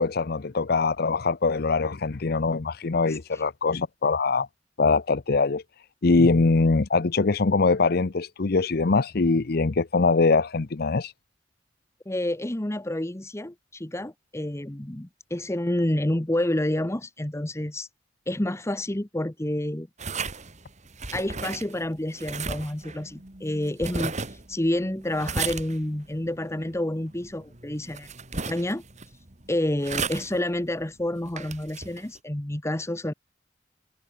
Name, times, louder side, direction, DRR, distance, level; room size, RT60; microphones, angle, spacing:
voice 1, 0.0-4.5 4.8-5.6 6.0-11.1, left 4 dB, 55° left, 0.7 m, -22 dB
voice 2, 3.0-3.4 12.1-17.9 18.3-19.9 21.1-28.1 28.5-28.8 29.5-33.1, left 1 dB, 15° left, 1.0 m, -29 dB
sound 1, 20.0-32.2, right 4 dB, 40° right, 2.7 m, -36 dB
head